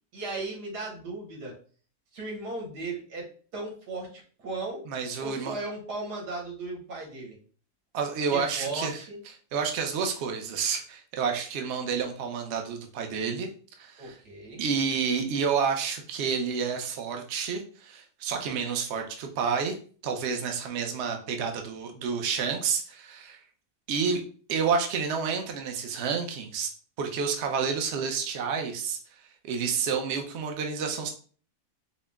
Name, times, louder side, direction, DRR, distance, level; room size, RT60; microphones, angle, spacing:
voice 1, 0.1-1.5 2.1-4.8 5.2-7.4 8.3-9.2 14.0-14.6, right 3 dB, 85° right, -1 dB, 1.8 m, -36 dB
voice 2, 4.9-5.5 7.9-9.0 9.5-13.5 13.8-14.2 14.6-19.8 20.0-23.4 23.9-24.2 24.5-26.7 27.0-29.0 29.4-31.1, right 6 dB, 60° right, 3 dB, 0.8 m, -29 dB
4.4 x 2.1 x 3.5 m, 0.42 s
omnidirectional pair, 1.7 m